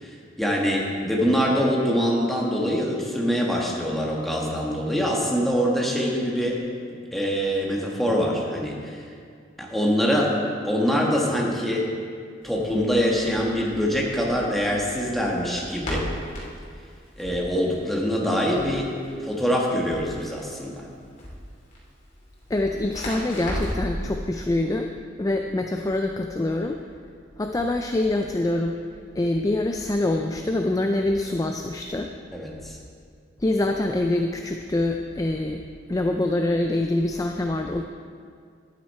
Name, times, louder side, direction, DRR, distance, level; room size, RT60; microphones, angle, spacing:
voice 1, 0.0-6.6 7.1-9.0 9.6-11.9 12.4-16.1 17.2-18.9 19.2-20.9 32.3-32.8, equal, ahead, -3 dB, 1.6 m, -24 dB
Crackle, 12.4-24.0, equal, 40° left, 2.8 m, -37 dB
voice 2, 22.5-24.9 25.2-26.8 27.4-28.8 29.2-32.1 33.4-35.6 35.9-37.8, left 2 dB, 20° left, 4 dB, 0.4 m, -25 dB
12.0 x 8.9 x 4.3 m, 2.2 s
head